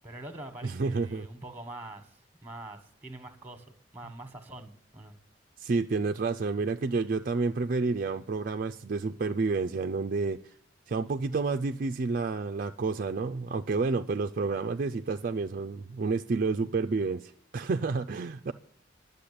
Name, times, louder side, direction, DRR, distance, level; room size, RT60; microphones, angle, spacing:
voice 1, 0.0-2.1 2.4-3.7 3.9-5.2, right 2 dB, 10° right, 8 dB, 1.3 m, -44 dB
voice 2, 0.6-1.3 5.6-10.5 10.9-18.5, right 4 dB, 50° right, 7 dB, 0.4 m, -30 dB
11.5 x 7.0 x 8.6 m, 0.65 s
head